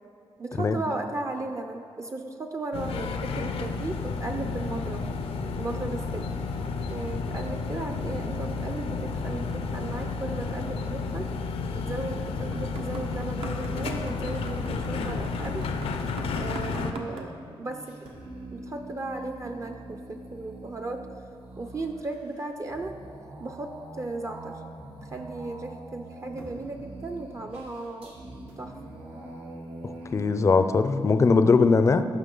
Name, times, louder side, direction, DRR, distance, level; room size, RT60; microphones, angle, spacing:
voice 1, 0.4-5.0 5.6-6.3 6.9-11.3 11.7-15.7 16.4-18.0 18.5-21.1 21.6-23.0 23.4-24.6 25.0-28.2 28.6-28.7, right 2 dB, 30° right, 4 dB, 0.5 m, -35 dB
sound 1, 2.7-16.9, left 4 dB, 90° left, 0.6 m, -31 dB
sound 2, 12.5-17.3, right 3 dB, 70° right, 0.9 m, -43 dB
sound 3, 17.1-30.3, right 1 dB, 90° right, 2.0 m, -44 dB
voice 2, 30.1-32.1, left 4 dB, 30° left, 10 dB, 0.4 m, -20 dB
15.0 x 5.9 x 3.8 m, 2.5 s
wide cardioid pair, 120°, 10 cm